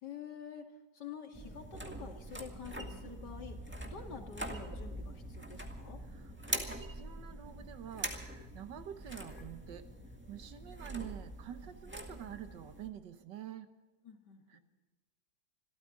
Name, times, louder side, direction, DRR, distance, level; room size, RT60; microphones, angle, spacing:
voice 1, 0.0-3.6 3.8-6.0 14.0-14.6, left 6 dB, 75° left, 3 dB, 2.7 m, -48 dB
sound 1, 1.3-12.9, right 1 dB, 5° right, 1.8 m, -44 dB
voice 2, 6.0-9.9 10.3-13.7 14.5-14.6, right 10 dB, 90° right, 9 dB, 1.8 m, -47 dB
26.0 x 13.5 x 3.9 m, 1.2 s
omnidirectional pair, 1.9 m